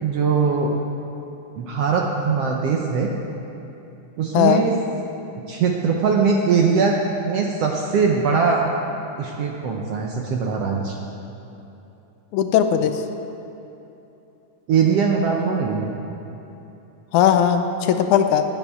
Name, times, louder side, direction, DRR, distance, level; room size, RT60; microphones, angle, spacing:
voice 1, 0.0-0.7 1.6-3.1 4.2-4.7 5.5-7.0 7.2-8.7 9.2-11.0 14.7-15.9, right 5 dB, 70° right, 0 dB, 1.5 m, -21 dB
voice 2, 4.3-4.7 12.3-13.0 17.1-18.5, left 9 dB, 80° left, 7 dB, 2.0 m, -18 dB
10.5 x 9.2 x 9.5 m, 3.0 s
omnidirectional pair, 3.7 m